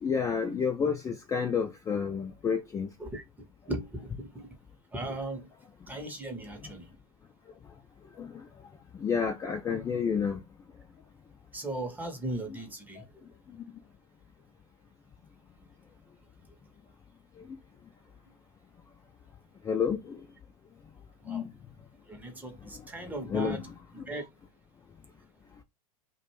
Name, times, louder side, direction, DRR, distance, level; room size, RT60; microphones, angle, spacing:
voice 1, 0.0-2.9 6.6-6.7 8.2-8.5 8.9-10.4 13.0-13.1 17.4-17.6 19.6-20.2 21.3-21.5 22.7-22.9 23.3-23.6 24.0-24.1, left 6 dB, 15° left, 0.4 m, -30 dB
voice 2, 3.7-4.6 4.9-5.5 5.9-6.9 11.5-13.3 21.2-21.5 22.1-23.6 24.1-24.2, right 2 dB, 10° right, 0.7 m, -37 dB
2.3 x 2.2 x 3.0 m
hypercardioid pair, 90°, 19 cm